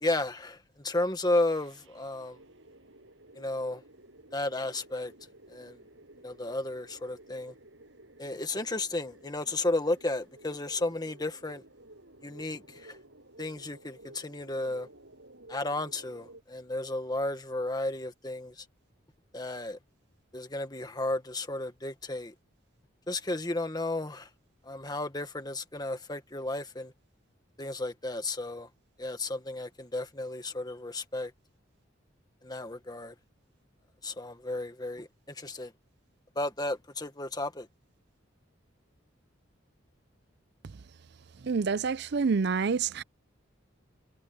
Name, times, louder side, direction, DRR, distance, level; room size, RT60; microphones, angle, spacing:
voice 1, 0.0-2.4 3.3-3.8 4.3-5.1 5.5-5.8 6.2-7.5 8.2-11.6 12.2-13.0 13.4-14.9 15.5-18.6 19.3-19.8 20.3-22.3 23.1-24.3 24.6-26.9 27.6-28.7 29.0-31.3 32.4-33.1 34.0-35.7 36.3-37.7, left 2 dB, 20° left, 1.6 m, -33 dB
sound 1, 1.5-16.4, right 1 dB, 75° right, 7.0 m, -54 dB
voice 2, 41.4-43.0, right 5 dB, 60° right, 0.5 m, -27 dB
head